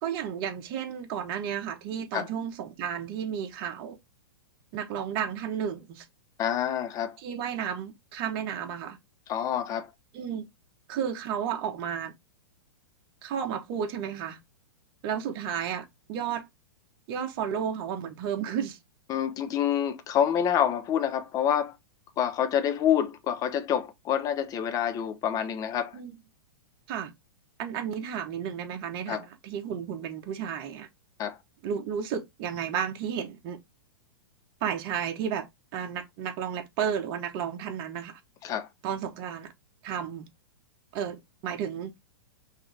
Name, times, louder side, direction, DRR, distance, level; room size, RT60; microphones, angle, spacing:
voice 1, 0.0-4.0 4.7-6.0 7.2-9.0 10.1-10.5 10.9-12.1 13.2-14.4 15.0-16.5 17.1-18.8 25.9-26.2 26.9-27.1 27.6-30.9 31.6-33.6 34.6-38.2 38.8-39.5 39.8-40.3 40.9-41.9, right 8 dB, 45° right, 1.1 m, -32 dB
voice 2, 6.4-7.2 9.3-9.9 19.1-21.7 22.2-26.0 29.1-29.2 31.2-31.4 38.4-38.7, left 9 dB, 30° left, 0.8 m, -27 dB
5.5 x 2.8 x 3.3 m
hypercardioid pair, 125°, 12 cm